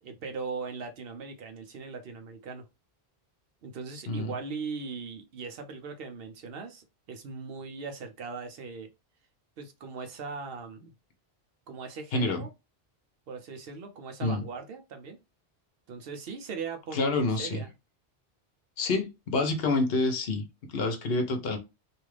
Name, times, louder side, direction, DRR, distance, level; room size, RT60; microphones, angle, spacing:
voice 1, 0.0-2.7 3.6-8.9 9.6-10.9 11.7-12.5 13.3-15.2 15.9-17.7, right 4 dB, 70° right, 0.9 m, -39 dB
voice 2, 12.1-12.4 14.2-14.4 16.9-17.6 18.8-21.6, left 3 dB, 70° left, 0.9 m, -28 dB
2.6 x 2.4 x 3.1 m
omnidirectional pair, 1.0 m